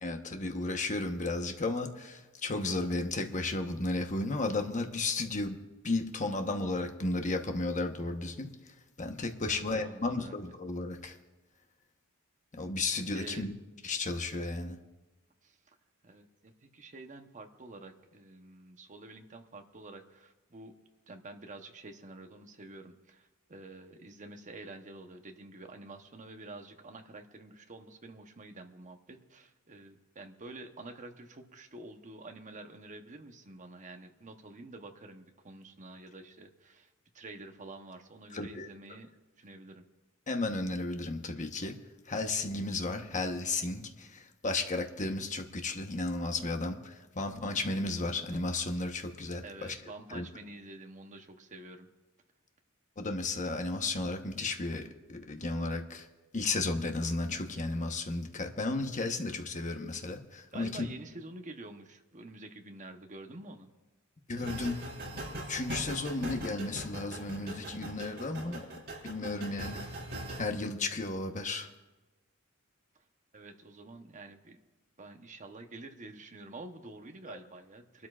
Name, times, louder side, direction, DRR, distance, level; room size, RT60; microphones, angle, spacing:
voice 1, 0.0-5.6 5.8-8.5 9.0-11.2 12.5-13.5 13.8-14.8 38.3-38.7 40.3-41.7 42.1-49.7 50.1-50.2 53.0-56.1 56.3-60.9 64.3-64.8 65.5-68.7 69.0-69.9 70.4-71.7 77.3-77.4, left 2 dB, 35° left, 5 dB, 1.1 m, -34 dB
voice 2, 9.5-10.4 13.1-13.5 15.4-15.6 16.0-20.7 21.1-36.9 37.1-39.1 39.4-39.8 49.4-51.9 60.5-63.7 73.3-74.6 75.0-78.1, right 2 dB, 35° right, 5 dB, 1.0 m, -48 dB
sound 1, 64.4-70.5, right 1 dB, 50° right, 4.9 m, -41 dB
28.0 x 12.5 x 2.5 m, 1.1 s
head